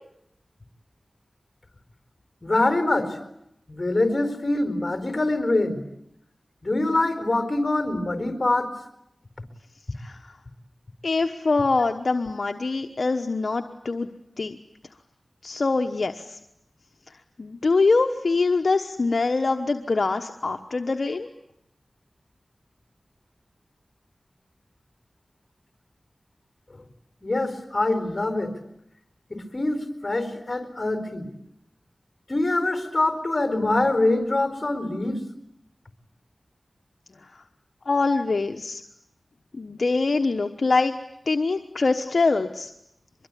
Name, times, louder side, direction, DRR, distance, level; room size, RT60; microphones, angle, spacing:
voice 1, 2.4-3.2 3.7-5.8 6.6-8.7 26.7-26.8 27.2-28.6 29.3-31.3 32.3-35.2, left 2 dB, 40° left, 9 dB, 4.5 m, -24 dB
voice 2, 11.0-14.1 14.4-14.6 15.4-16.4 17.4-21.3 37.9-38.8 39.5-40.9 41.3-42.7, left 3 dB, 65° left, 6 dB, 1.1 m, -24 dB
24.5 x 22.0 x 9.9 m, 0.77 s
wide cardioid pair, 55°, 0 cm